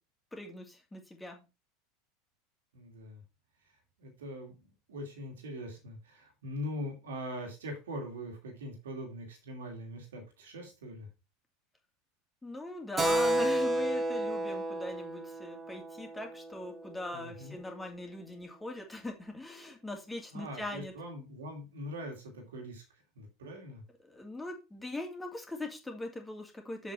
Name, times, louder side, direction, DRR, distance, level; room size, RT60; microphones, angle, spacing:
voice 1, 0.3-1.4 12.4-20.9 24.1-26.9, left 2 dB, 10° left, 3 dB, 2.6 m, -41 dB
voice 2, 2.7-3.2 4.0-11.1 17.1-17.6 20.3-23.8, equal, 70° right, 2 dB, 2.6 m, -42 dB
Keyboard (musical), 13.0-17.1, right 1 dB, 25° right, 2.1 m, -31 dB
7.4 x 6.5 x 4.6 m, 0.27 s
figure-of-eight pair, 80°, 0 cm